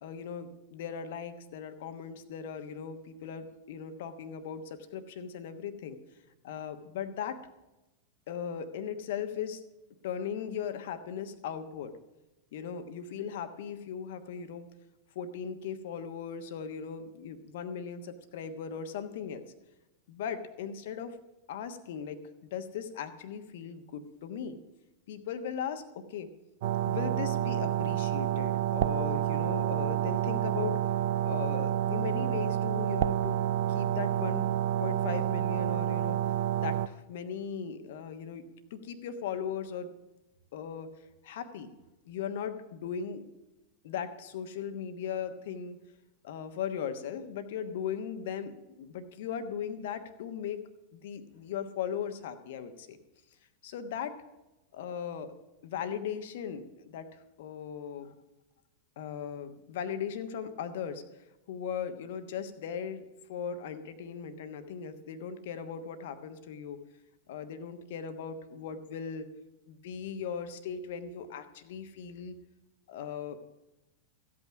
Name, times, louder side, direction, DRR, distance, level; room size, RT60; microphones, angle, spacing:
voice 1, 0.0-6.0 6.4-7.4 8.3-9.6 10.0-11.9 12.5-14.7 15.1-19.4 20.1-21.2 21.5-22.2 22.5-24.6 25.1-26.3 26.9-30.8 31.2-34.5 34.8-36.2 36.6-38.4 38.7-39.9 40.5-40.9 41.2-41.7 42.0-43.2 43.8-45.8 46.2-50.6 50.9-53.0 53.6-54.1 54.7-55.3 55.6-58.1 59.0-66.8 67.3-69.3 69.7-72.4 72.9-73.5, left 7 dB, 55° left, 9 dB, 1.2 m, -38 dB
sound 1, 26.6-36.9, right 12 dB, 50° right, 0.4 m, -29 dB
15.0 x 8.7 x 6.0 m, 0.99 s
figure-of-eight pair, 90°, 0 cm